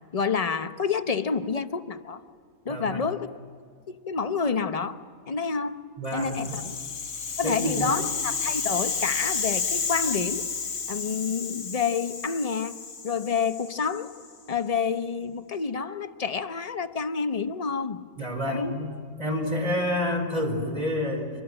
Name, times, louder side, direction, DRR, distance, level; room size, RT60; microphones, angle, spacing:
voice 1, 0.1-2.2 2.6-3.3 3.9-5.0 5.3-5.8 6.1-6.8 7.4-10.4 10.9-12.8 13.0-14.1 14.5-18.0 18.5-18.7, left 5 dB, 35° left, 9 dB, 0.8 m, -28 dB
voice 2, 2.7-3.0 6.0-6.6 7.4-8.0 18.2-18.9 19.2-21.3, left 1 dB, 30° right, 2 dB, 4.5 m, -29 dB
Rattle (instrument), 6.1-14.3, left 5 dB, 70° left, 1.5 m, -31 dB
26.5 x 21.5 x 9.0 m, 2.2 s
omnidirectional pair, 1.4 m